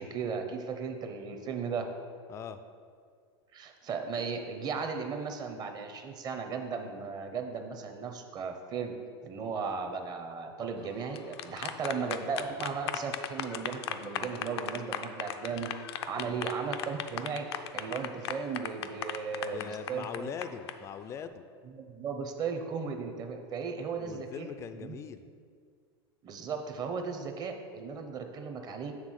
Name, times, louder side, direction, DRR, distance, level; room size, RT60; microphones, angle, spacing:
voice 1, 0.0-1.9 3.5-9.0 9.2-15.7 16.1-20.3 21.7-24.5 24.8-25.0 26.2-28.9, right 5 dB, 30° right, 6 dB, 0.8 m, -36 dB
voice 2, 2.3-2.6 16.2-16.5 19.4-21.4 23.7-25.3, left 7 dB, 20° left, 10 dB, 0.3 m, -42 dB
sound 1, 11.0-20.7, left 10 dB, 80° left, 0.5 m, -37 dB
7.4 x 3.6 x 6.4 m, 2.1 s
supercardioid pair, 125°, 13 cm